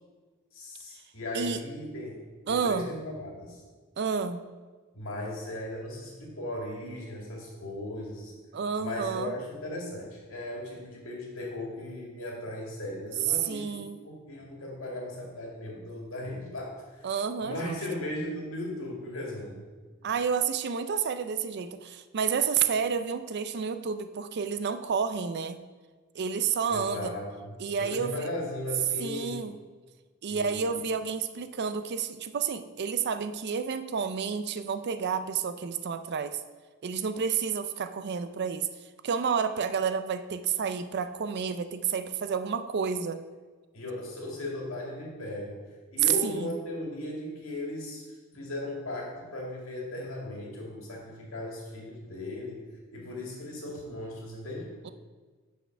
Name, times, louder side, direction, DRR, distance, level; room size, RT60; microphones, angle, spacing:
voice 1, 0.5-3.6 4.9-8.3 8.8-17.1 17.4-19.7 26.7-27.5 27.7-29.4 30.3-30.6 43.7-45.6 45.9-48.0 48.3-54.7, left 1 dB, 70° left, -2 dB, 2.2 m, -37 dB
voice 2, 2.5-2.9 4.0-4.4 8.5-9.3 13.5-14.0 17.0-17.8 20.0-25.6 26.1-27.1 27.6-28.3 29.0-29.5 30.2-36.4 36.8-38.7 39.0-43.2 46.2-46.5 54.8-54.9, right 6 dB, 55° right, 10 dB, 0.5 m, -30 dB
6.2 x 5.8 x 5.9 m, 1.4 s
head